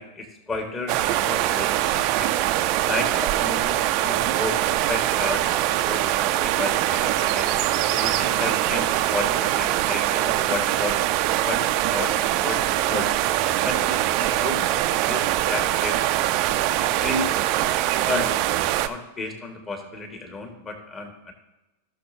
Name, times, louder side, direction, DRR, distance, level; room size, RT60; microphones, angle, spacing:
voice 1, 0.0-2.3 2.8-4.6 4.9-5.5 5.9-7.5 7.9-11.0 11.4-12.6 12.9-13.2 13.6-14.6 15.0-16.0 16.8-17.3 18.1-21.3, left 2 dB, 20° left, 4 dB, 1.8 m, -32 dB
sound 1, 0.9-18.9, right 13 dB, 40° right, 0.5 m, -23 dB
16.5 x 6.6 x 2.8 m, 1.0 s
figure-of-eight pair, 90°, 0 cm